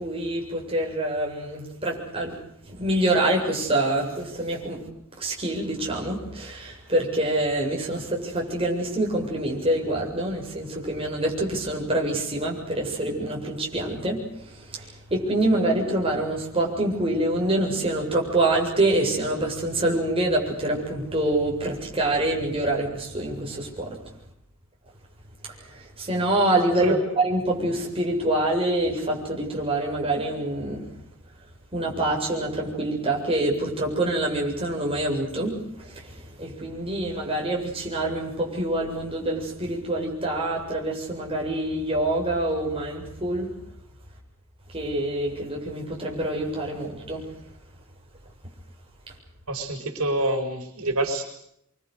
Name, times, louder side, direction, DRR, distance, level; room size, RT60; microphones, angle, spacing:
voice 1, 0.0-2.4 2.7-4.8 5.2-14.2 14.5-24.0 25.4-30.8 31.7-43.5 44.7-47.3, right 1 dB, 25° right, -1 dB, 7.6 m, -26 dB
voice 2, 49.5-51.2, right 2 dB, 85° right, 5 dB, 4.8 m, -27 dB
27.0 x 24.5 x 6.6 m, 0.75 s
head